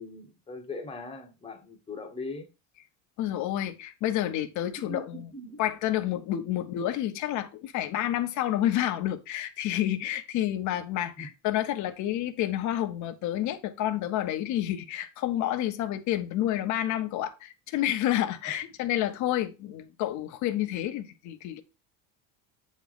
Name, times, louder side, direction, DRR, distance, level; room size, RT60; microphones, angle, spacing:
voice 1, 0.0-2.5 4.8-5.6 11.2-11.3, left 2 dB, 15° left, 1.0 m, -40 dB
voice 2, 3.2-5.3 5.6-21.6, left 12 dB, 50° left, 0.8 m, -29 dB
8.1 x 3.1 x 3.9 m
cardioid pair, 150°, 38 cm